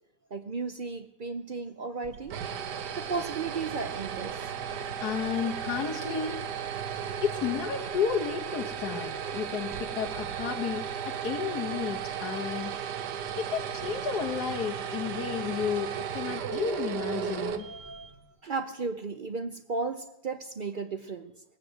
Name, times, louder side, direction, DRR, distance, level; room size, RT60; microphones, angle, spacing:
voice 1, 0.3-2.4 3.0-4.5 16.7-18.1 18.4-21.4, right 4 dB, 60° right, 9 dB, 0.5 m, -35 dB
sound 1, 2.0-18.2, right 8 dB, 90° right, 1.5 m, -35 dB
voice 2, 5.0-6.4 7.2-12.7 13.4-17.7, left 7 dB, 75° left, 3 dB, 1.5 m, -32 dB
18.5 x 7.9 x 7.9 m, 0.89 s
omnidirectional pair, 1.7 m